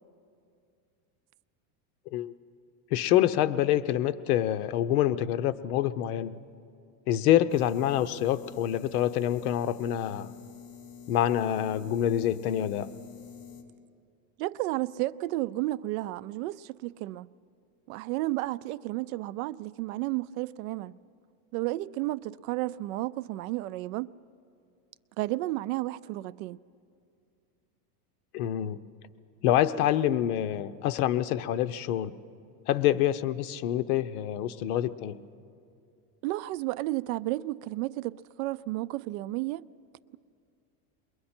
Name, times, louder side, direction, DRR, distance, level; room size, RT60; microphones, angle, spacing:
voice 1, 2.9-6.4 7.1-10.3 11.1-12.9 28.3-28.8 29.4-32.1 32.7-35.2, left 12 dB, 80° left, 0.8 m, -26 dB
sound 1, 7.5-13.6, left 7 dB, 60° left, 2.4 m, -47 dB
voice 2, 14.4-17.3 17.9-21.0 21.5-24.1 25.2-26.6 36.2-39.6, right 18 dB, 70° right, 0.5 m, -32 dB
28.5 x 22.0 x 4.4 m
supercardioid pair, 160°, 44 cm